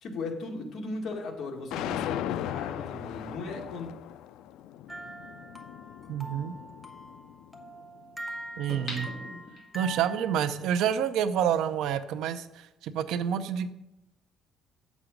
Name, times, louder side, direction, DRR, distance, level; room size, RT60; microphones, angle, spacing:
voice 1, 0.0-3.9, left 3 dB, 55° left, 2 dB, 1.7 m, -37 dB
sound 1, 1.7-7.9, left 11 dB, 85° left, 0.3 m, -38 dB
sound 2, 4.9-11.1, right 2 dB, ahead, 1.0 m, -43 dB
voice 2, 6.1-6.6 8.6-9.1 9.7-13.7, right 9 dB, 85° right, 11 dB, 0.6 m, -28 dB
sound 3, 8.7-10.0 10.5-10.6, left 2 dB, 35° left, 2.6 m, -40 dB
8.1 x 7.3 x 5.1 m, 0.89 s
cardioid pair, 155°, 0 cm